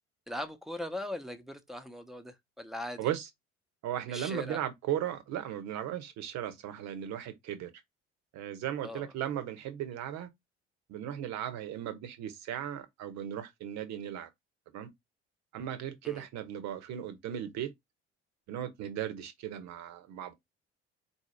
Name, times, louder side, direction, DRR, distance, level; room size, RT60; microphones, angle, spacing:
voice 1, 0.3-3.1 4.1-4.6 8.8-9.1 16.0-16.2, left 1 dB, ahead, 0.9 m, -40 dB
voice 2, 3.0-3.3 3.8-7.7 8.3-10.3 10.9-14.3 14.7-14.9 15.5-17.7 18.5-20.3, right 10 dB, 50° right, 1.0 m, -36 dB
4.4 x 2.8 x 4.4 m
figure-of-eight pair, 50°, 34 cm